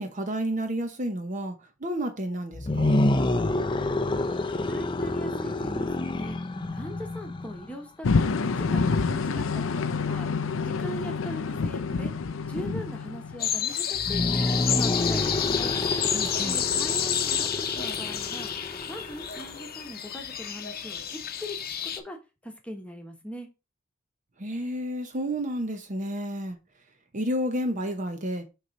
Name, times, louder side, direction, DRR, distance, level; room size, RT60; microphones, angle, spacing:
voice 1, 0.0-3.0 16.1-16.6 24.4-26.6 27.1-28.4, equal, 40° right, 0.9 m, -31 dB
sound 1, 2.5-7.7 13.9-19.6, left 2 dB, 25° left, 0.5 m, -28 dB
voice 2, 4.0-6.4 6.7-9.8 10.1-12.1 12.5-15.8 16.4-18.5 18.9-21.6 22.0-22.2 22.4-23.5, equal, 5° left, 1.2 m, -41 dB
sound 2, 8.0-13.7, left 4 dB, 90° left, 0.5 m, -27 dB
sound 3, 13.4-22.0, left 9 dB, 50° left, 0.9 m, -30 dB
6.4 x 3.2 x 5.2 m
head